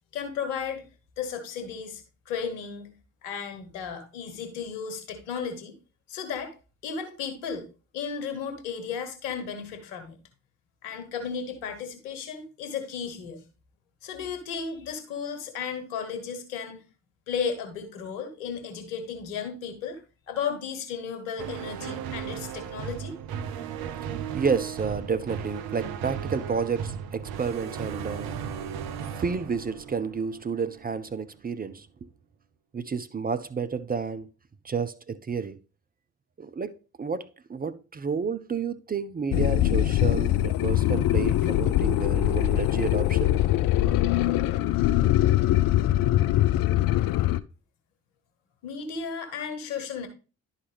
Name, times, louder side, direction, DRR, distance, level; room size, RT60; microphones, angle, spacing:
voice 1, 0.1-0.9 1.2-2.9 3.2-5.7 6.1-6.5 6.8-7.7 7.9-10.2 10.8-13.4 14.0-16.8 17.3-20.0 20.3-23.1 48.6-50.1, left 6 dB, 80° left, 1.2 m, -34 dB
sound 1, 21.4-30.8, right 8 dB, 65° right, 0.7 m, -36 dB
voice 2, 24.3-28.3 29.2-31.9 32.7-34.3 34.6-35.6 36.4-43.3, right 5 dB, 25° right, 0.5 m, -30 dB
sound 2, 39.3-47.4, left 13 dB, 60° left, 0.5 m, -22 dB
11.0 x 4.0 x 3.3 m
hypercardioid pair, 40°, 40 cm